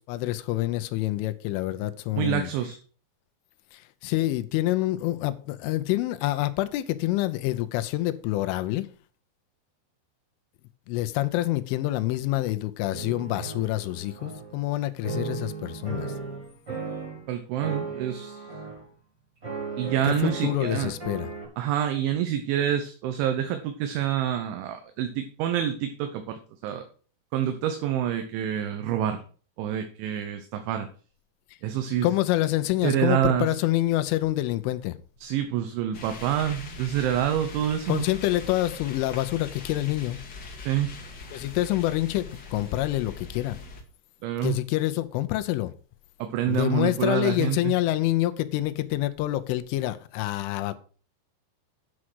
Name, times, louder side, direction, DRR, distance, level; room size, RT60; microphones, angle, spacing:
voice 1, 0.0-2.5 3.7-8.9 10.9-16.1 20.1-21.3 32.0-35.0 37.9-40.2 41.3-43.6 44.4-45.7 46.5-50.8, left 16 dB, 80° left, 3.1 m, -27 dB
voice 2, 2.2-2.8 17.3-18.4 19.8-20.9 21.6-26.9 27.3-29.2 29.6-30.9 31.6-32.1 32.8-33.5 35.2-38.1 40.7-41.0 44.2-44.5 46.2-47.7, right 10 dB, 75° right, 3.2 m, -27 dB
sound 1, 12.9-14.7 15.0-17.3 17.6-18.8 19.4-21.5, right 4 dB, 15° right, 3.7 m, -36 dB
sound 2, 35.9-43.8, left 4 dB, 65° left, 1.0 m, -42 dB
9.9 x 6.3 x 6.2 m
omnidirectional pair, 5.9 m